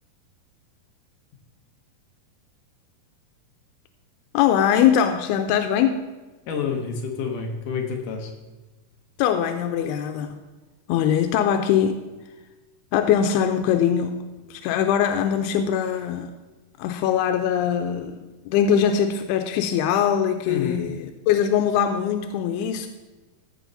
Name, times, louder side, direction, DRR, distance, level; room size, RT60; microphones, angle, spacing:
voice 1, 4.3-6.0 9.2-10.4 10.9-12.0 12.9-16.3 16.8-22.9, left 9 dB, 90° left, 6 dB, 2.6 m, -22 dB
voice 2, 6.5-8.3 20.5-20.8, left 6 dB, 70° left, 3 dB, 2.2 m, -28 dB
15.5 x 6.4 x 3.9 m, 1.2 s
omnidirectional pair, 4.5 m